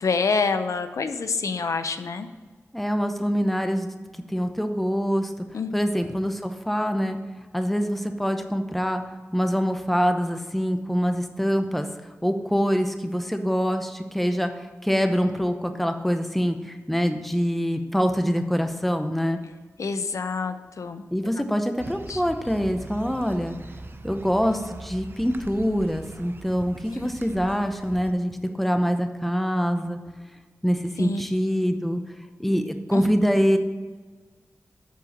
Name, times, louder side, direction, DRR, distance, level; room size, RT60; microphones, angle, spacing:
voice 1, 0.0-2.3 5.5-5.7 19.8-21.0 22.1-22.2 26.9-27.1 31.0-31.2 32.9-33.0, left 4 dB, 80° left, 9 dB, 0.5 m, -27 dB
voice 2, 2.7-3.9 4.3-5.3 5.7-7.2 7.5-9.0 9.3-11.9 12.2-19.4 21.1-23.6 24.0-30.0 30.6-32.0 32.4-33.6, equal, 5° left, 6 dB, 0.8 m, -24 dB
sound 1, 21.8-28.1, right 3 dB, 45° right, 0.6 m, -42 dB
8.3 x 4.6 x 7.0 m, 1.4 s
wide cardioid pair, 90°, 5 cm